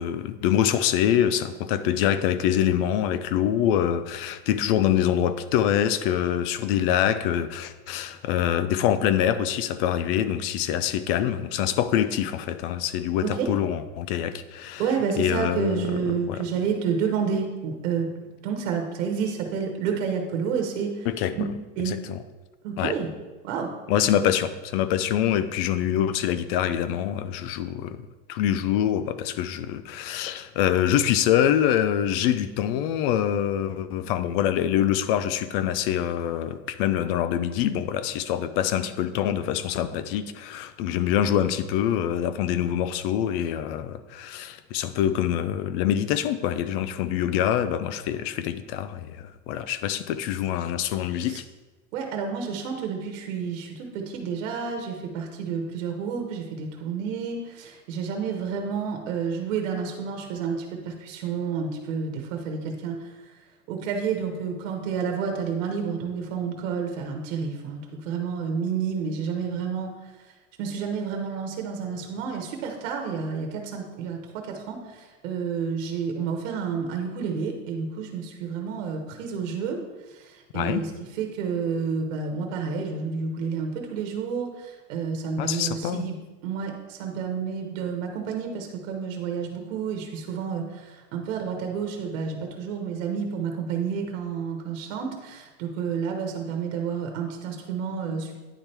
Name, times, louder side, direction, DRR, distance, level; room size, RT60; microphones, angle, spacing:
voice 1, 0.0-14.8 15.2-15.9 16.3-16.4 21.1-21.3 21.9-22.2 22.8-22.9 23.9-28.0 28.3-51.4 80.5-80.8 85.4-86.1, left 10 dB, 50° left, 13 dB, 0.4 m, -25 dB
voice 2, 14.8-18.1 18.4-21.1 21.3-21.4 21.8-22.0 22.6-23.1 23.4-23.7 51.3-51.4 51.9-63.4 63.7-69.9 70.2-70.3 70.6-79.8 80.1-86.1 86.4-98.4, right 6 dB, 70° right, 2 dB, 1.3 m, -30 dB
9.8 x 3.4 x 4.4 m, 1.2 s
supercardioid pair, 165°, 39 cm